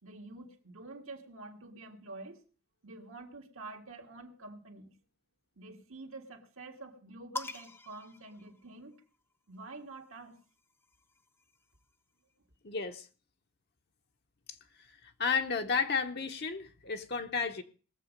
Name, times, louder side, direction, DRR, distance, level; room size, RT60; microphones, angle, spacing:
voice 1, 0.0-2.4 2.8-4.9 5.6-8.9 9.5-10.4, right 3 dB, 75° right, 1.9 m, -48 dB
sound 1, 7.4-9.2 10.3-11.9, left 3 dB, 10° left, 0.6 m, -45 dB
voice 2, 12.6-13.1 14.5-14.6 14.9-17.6, left 5 dB, 50° left, 0.8 m, -33 dB
19.0 x 7.3 x 5.2 m
head